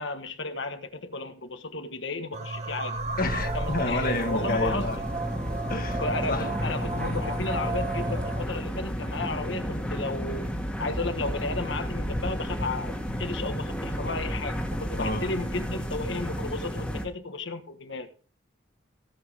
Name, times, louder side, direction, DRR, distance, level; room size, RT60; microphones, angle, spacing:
voice 1, 0.0-3.0 3.5-4.9 6.0-10.5 10.8-18.1, left 3 dB, 65° left, 1.4 m, -33 dB
sound 1, 2.3-8.5, right 2 dB, 35° right, 1.2 m, -33 dB
sound 2, 2.9-17.1, equal, 5° left, 1.8 m, -32 dB
voice 2, 3.2-5.0 5.7-6.5 15.0-15.3, left 2 dB, 45° left, 1.7 m, -29 dB
17.0 x 6.2 x 4.9 m
head